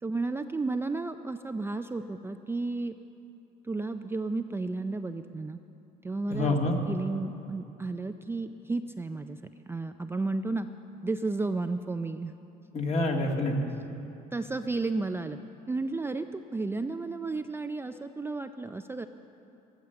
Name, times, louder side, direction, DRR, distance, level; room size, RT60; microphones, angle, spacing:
voice 1, 0.0-2.9 3.6-5.6 6.0-6.6 6.9-9.4 9.7-10.7 11.0-12.4 14.3-15.4 15.7-19.1, right 3 dB, 15° right, 8 dB, 0.4 m, -32 dB
voice 2, 6.3-6.8 12.7-13.6, left 2 dB, 40° left, 2 dB, 2.0 m, -27 dB
13.0 x 11.5 x 6.9 m, 2.8 s
cardioid pair, 110°, 17 cm